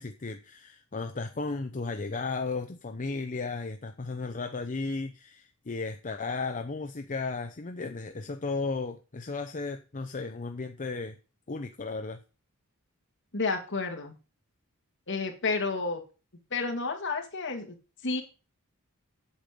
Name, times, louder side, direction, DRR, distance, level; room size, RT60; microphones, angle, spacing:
voice 1, 0.0-11.2 11.5-12.2, left 3 dB, 35° left, 6 dB, 0.7 m, -34 dB
voice 2, 13.3-14.2 15.1-16.0 16.5-17.8 18.0-18.2, left 4 dB, 55° left, 3 dB, 2.2 m, -30 dB
8.7 x 7.6 x 5.1 m, 0.33 s
head